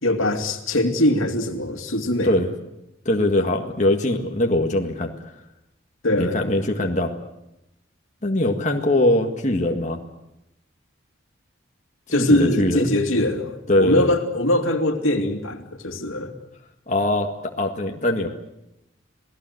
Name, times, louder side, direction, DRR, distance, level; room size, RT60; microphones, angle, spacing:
voice 1, 0.0-2.3 6.0-6.4 12.1-16.4, left 1 dB, 85° left, 5 dB, 2.6 m, -22 dB
voice 2, 3.1-5.1 6.1-7.1 8.2-10.0 12.1-12.8 13.7-14.1 16.9-18.3, left 1 dB, 35° left, 2 dB, 1.8 m, -21 dB
27.5 x 18.5 x 7.9 m, 0.86 s
head